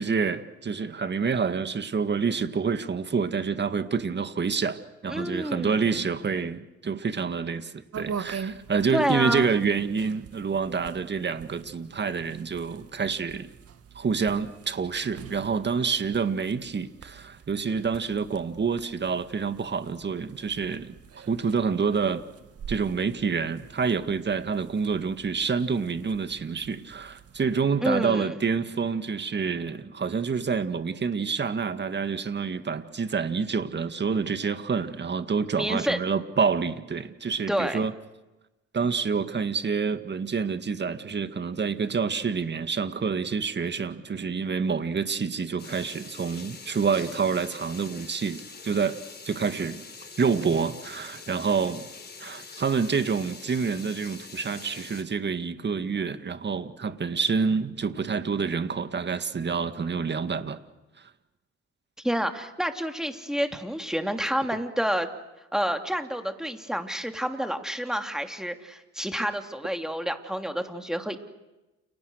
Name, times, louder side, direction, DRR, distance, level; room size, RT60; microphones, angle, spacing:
voice 1, 0.0-13.5 14.0-21.0 21.3-22.2 22.7-37.9 38.7-49.0 49.2-49.8 50.2-51.9 52.2-60.6, right 5 dB, 35° right, 10 dB, 2.0 m, -27 dB
voice 2, 5.1-6.1 8.9-9.5 27.8-28.4 35.6-36.0 37.5-37.9 62.0-65.1 65.5-71.2, equal, ahead, 6 dB, 3.1 m, -29 dB
sound 1, 7.9-27.6, right 7 dB, 50° right, 1.6 m, -44 dB
sound 2, 45.6-55.0, left 4 dB, 35° left, 4.7 m, -44 dB
30.0 x 29.0 x 6.5 m, 1.0 s
cardioid pair, 90°, 30 cm